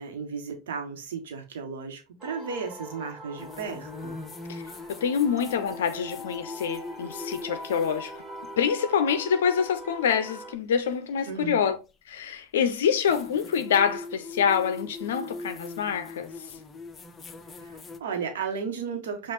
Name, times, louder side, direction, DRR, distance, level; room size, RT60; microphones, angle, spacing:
voice 1, 0.0-4.1 11.3-11.6 17.6-19.3, right 6 dB, 75° right, 1.1 m, -34 dB
sound 1, 2.2-10.5, equal, 15° right, 1.8 m, -43 dB
sound 2, 3.4-8.9 10.9-11.0 13.1-18.0, left 3 dB, 25° left, 0.5 m, -41 dB
voice 2, 4.9-8.1 8.6-11.8 12.1-16.3, left 7 dB, 75° left, 0.4 m, -26 dB
5.6 x 2.4 x 3.0 m
hypercardioid pair, 85°, 0 cm